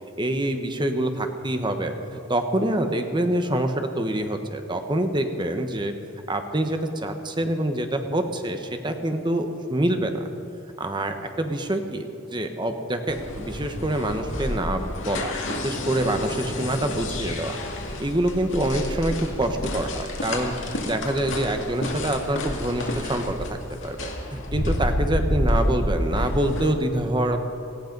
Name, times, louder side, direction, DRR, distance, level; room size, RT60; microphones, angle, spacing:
voice 1, 0.2-5.9 6.3-10.1 10.8-17.6 18.0-20.5 20.8-23.4 23.7-27.4, right 1 dB, 25° right, 6 dB, 1.1 m, -26 dB
sound 1, 13.1-26.7, left 1 dB, 70° left, 2.2 m, -29 dB
18.5 x 14.5 x 5.4 m, 2.6 s
head